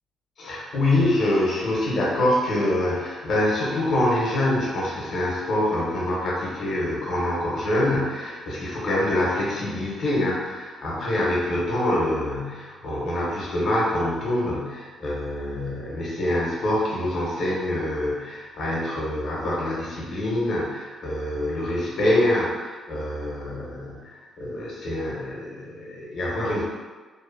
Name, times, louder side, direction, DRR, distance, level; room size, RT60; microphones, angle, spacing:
voice 1, 0.4-26.6, left 1 dB, 60° left, -5 dB, 0.8 m, -25 dB
2.7 x 2.1 x 2.5 m, 1.4 s
cardioid pair, 90°, 0 cm